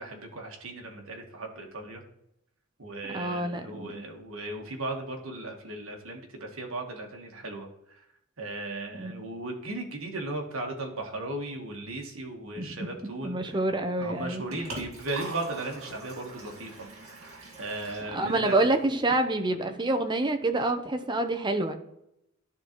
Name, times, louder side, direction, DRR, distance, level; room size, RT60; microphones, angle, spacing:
voice 1, 0.0-2.0 2.8-7.7 8.4-13.6 14.0-18.7, right 2 dB, 70° right, 2 dB, 1.5 m, -37 dB
voice 2, 3.1-4.0 8.9-9.3 12.6-12.7 13.2-14.4 18.1-21.8, right 2 dB, 20° right, 6 dB, 0.7 m, -27 dB
Liquid, 14.1-19.2, right 2 dB, 85° right, 1.9 m, -44 dB
11.5 x 3.9 x 3.0 m, 0.80 s
head